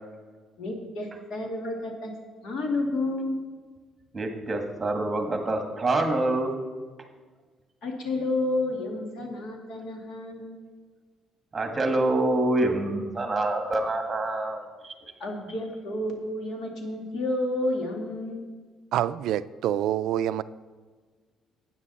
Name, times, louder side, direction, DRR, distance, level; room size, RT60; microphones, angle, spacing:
voice 1, 0.6-2.1 2.4-3.4 7.8-10.6 15.2-18.5, left 2 dB, 70° left, 2.2 m, -30 dB
voice 2, 4.1-6.5 11.5-14.9, right 2 dB, 20° right, 1.6 m, -26 dB
voice 3, 18.9-20.4, right 11 dB, 75° right, 0.3 m, -26 dB
12.5 x 9.0 x 4.2 m
cardioid pair, 135°, 0 cm